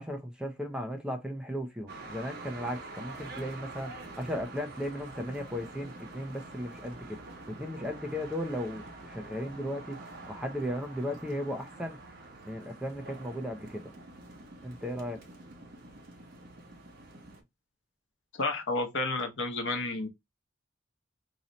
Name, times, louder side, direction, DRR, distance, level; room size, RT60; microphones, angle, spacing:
voice 1, 0.0-7.2 7.5-10.0 10.3-12.0 12.4-13.8 14.6-15.2, equal, 5° right, 0.6 m, -36 dB
sound 1, 1.9-17.4, right 2 dB, 55° right, 1.0 m, -46 dB
voice 2, 18.3-20.1, left 2 dB, 70° left, 0.9 m, -31 dB
3.1 x 2.8 x 3.9 m
head